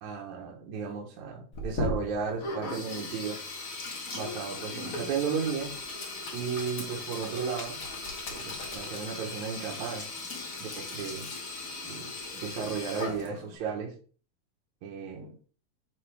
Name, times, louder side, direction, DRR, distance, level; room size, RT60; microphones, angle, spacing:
voice 1, 0.0-3.4 4.1-5.7 6.3-7.8 8.3-10.1 10.6-11.3 11.9-12.1 12.4-13.9 14.8-15.4, right 6 dB, 75° right, 0 dB, 2.5 m, -34 dB
Sink (filling or washing), 1.5-13.6, left 2 dB, 50° left, 1.0 m, -37 dB
9.4 x 3.5 x 3.4 m, 0.40 s
omnidirectional pair, 3.4 m